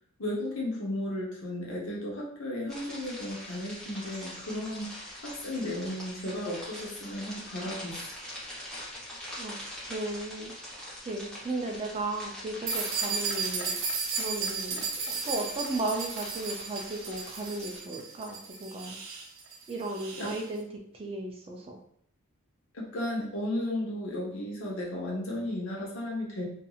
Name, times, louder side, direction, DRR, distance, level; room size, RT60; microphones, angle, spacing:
voice 1, 0.2-4.9 5.2-8.2 20.2-20.3 22.7-26.5, left 1 dB, 65° left, -3 dB, 0.9 m, -34 dB
sound 1, 2.7-17.8, left 1 dB, 5° left, 0.8 m, -43 dB
voice 2, 9.9-10.5 11.0-13.7 14.1-19.0 19.7-20.7 20.9-21.8, right 2 dB, 25° right, 1 dB, 0.3 m, -35 dB
sound 2, 12.7-20.4, right 5 dB, 75° right, 0.6 m, -34 dB
2.8 x 2.6 x 2.3 m, 0.67 s
head